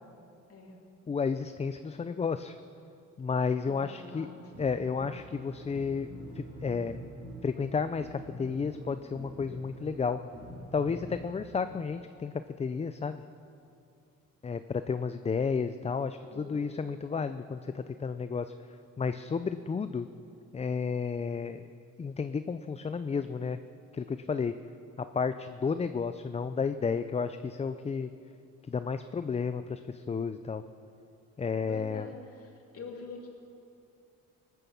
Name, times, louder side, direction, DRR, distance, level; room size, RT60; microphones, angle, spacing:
voice 1, 1.1-2.5 3.2-4.3 4.6-6.1 6.4-6.9 7.4-10.2 10.7-13.2 14.4-18.5 19.0-20.1 20.5-21.6 22.0-23.6 23.9-24.5 25.0-28.1 28.7-30.6 31.4-32.1, left 5 dB, 20° left, 11 dB, 0.4 m, -32 dB
voice 2, 3.6-4.5 16.3-16.7 31.7-33.3, left 4 dB, 50° left, -1 dB, 2.9 m, -45 dB
sound 1, 4.4-11.2, right 1 dB, 50° right, 4.4 m, -46 dB
18.5 x 9.2 x 7.0 m, 2.5 s
cardioid pair, 90°, 30 cm